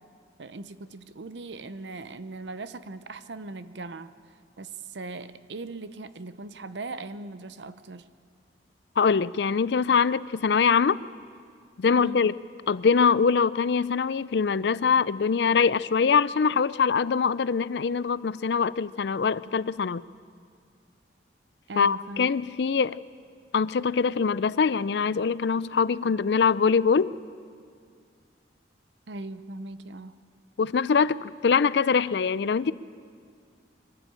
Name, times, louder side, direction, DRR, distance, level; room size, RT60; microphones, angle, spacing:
voice 1, 0.4-4.1 4.6-8.1 11.9-12.2 21.7-22.3 29.1-30.2, right 2 dB, 75° right, 13 dB, 0.8 m, -39 dB
voice 2, 9.0-11.0 11.8-12.3 12.7-20.0 21.8-23.0 23.5-27.1 30.6-32.7, left 5 dB, 65° left, 18 dB, 0.4 m, -23 dB
23.5 x 13.5 x 9.0 m, 2.1 s
head